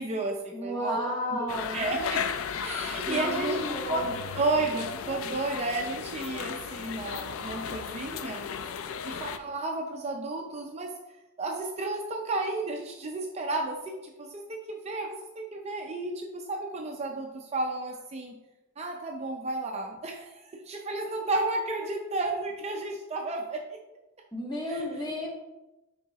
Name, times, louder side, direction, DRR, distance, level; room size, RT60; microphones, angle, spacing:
voice 1, 0.0-1.1 1.7-2.2 2.6-3.6 3.9-4.0 4.3-8.8 9.0-11.0 11.4-18.4 18.8-23.8 24.7-24.9, right 2 dB, 30° right, 1 dB, 0.5 m, -32 dB
voice 2, 0.5-1.8 3.1-4.2 24.3-25.3, equal, 20° left, -3 dB, 1.4 m, -33 dB
sound 1, 1.5-9.4, left 7 dB, 75° left, 0.4 m, -35 dB
9.5 x 3.6 x 3.0 m, 1.0 s
head